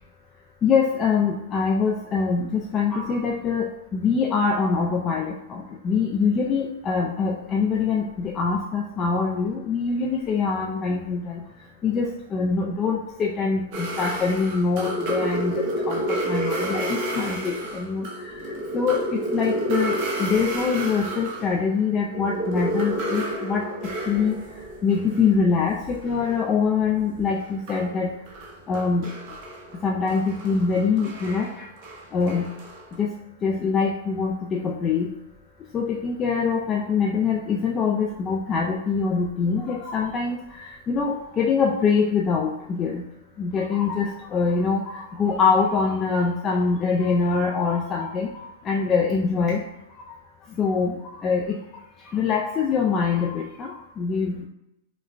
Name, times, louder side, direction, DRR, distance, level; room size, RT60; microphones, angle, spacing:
voice 1, 0.6-11.4 11.8-23.6 24.1-24.3 24.8-28.1 28.7-29.1 29.8-31.7 32.1-32.5 33.0-33.1 33.4-35.1 35.7-43.0 43.4-48.3 48.6-49.6 50.6-51.0 51.2-51.6 52.1-54.4, left 5 dB, 25° left, -1 dB, 0.4 m, -24 dB
sound 1, 13.7-21.6 21.9-26.6 26.8-33.0, right 1 dB, 45° right, 0.9 m, -30 dB
5.0 x 2.1 x 2.5 m, 0.90 s
hypercardioid pair, 140°, 0 cm